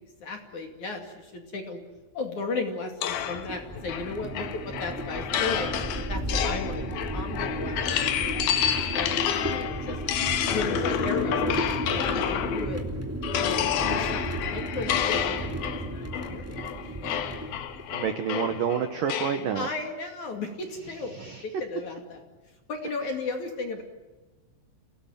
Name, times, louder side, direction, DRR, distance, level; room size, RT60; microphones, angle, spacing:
voice 1, 0.2-1.8 2.1-5.8 6.1-10.0 10.5-12.8 13.4-16.7 17.0-17.3 18.3-18.6 19.5-22.2 22.7-23.8, left 3 dB, 45° left, 4 dB, 3.1 m, -35 dB
sound 1, 3.0-12.8 13.2-19.5, left 10 dB, 70° left, 2.6 m, -29 dB
sound 2, 3.1-18.1, right 1 dB, 5° right, 1.0 m, -34 dB
voice 2, 17.9-19.7 21.2-21.4, right 8 dB, 70° right, 8 dB, 2.0 m, -29 dB
30.0 x 18.5 x 9.1 m, 1.2 s
omnidirectional pair, 5.8 m